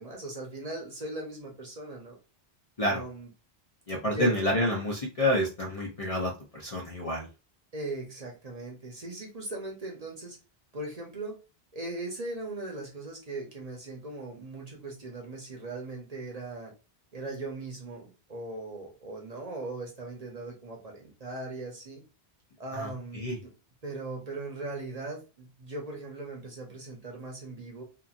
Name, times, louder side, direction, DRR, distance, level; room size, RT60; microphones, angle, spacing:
voice 1, 0.0-2.2 2.9-3.3 4.0-4.3 7.7-10.4 10.7-11.4 11.7-16.7 17.1-22.0 22.6-23.5 23.8-27.8, right 2 dB, 40° right, -1 dB, 0.8 m, -39 dB
voice 2, 3.9-7.3 22.7-23.4, left 1 dB, 40° left, -1 dB, 0.6 m, -29 dB
2.9 x 2.4 x 2.4 m, 0.30 s
omnidirectional pair, 1.1 m